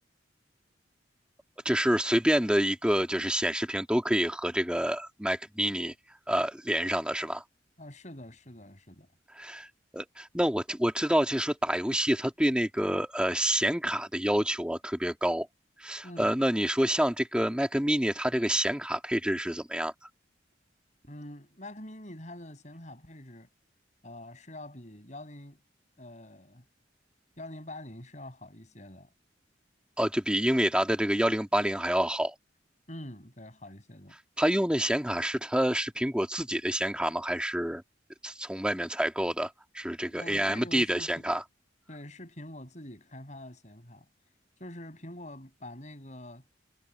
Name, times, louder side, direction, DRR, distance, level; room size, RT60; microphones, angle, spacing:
voice 1, 1.7-5.9 6.3-7.4 9.4-9.7 9.9-15.5 15.8-19.9 30.0-32.3 34.4-37.8 38.2-41.4, equal, 5° right, 1.9 m, -27 dB
voice 2, 7.8-9.1 16.0-16.3 21.0-23.5 24.0-25.6 26.0-26.7 27.4-29.1 32.9-34.2 40.1-41.3 41.9-44.1 44.6-46.4, left 1 dB, 40° left, 7.7 m, -45 dB
head